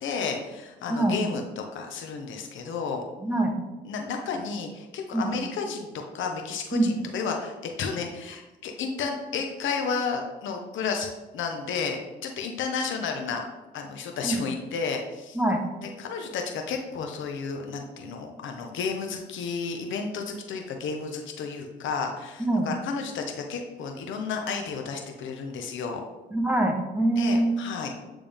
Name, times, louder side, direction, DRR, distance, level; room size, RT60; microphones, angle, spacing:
voice 1, 0.0-3.0 3.8-11.1 11.3-13.4 13.7-15.4 15.8-26.0 27.1-27.9, left 5 dB, 75° left, 3 dB, 1.0 m, -32 dB
voice 2, 3.2-3.5 5.1-5.3 6.7-6.9 14.2-14.4 15.3-15.6 22.4-22.7 26.3-27.5, right 1 dB, 10° right, 2 dB, 1.0 m, -24 dB
9.0 x 3.6 x 3.6 m, 1.1 s
cardioid pair, 90°, 20 cm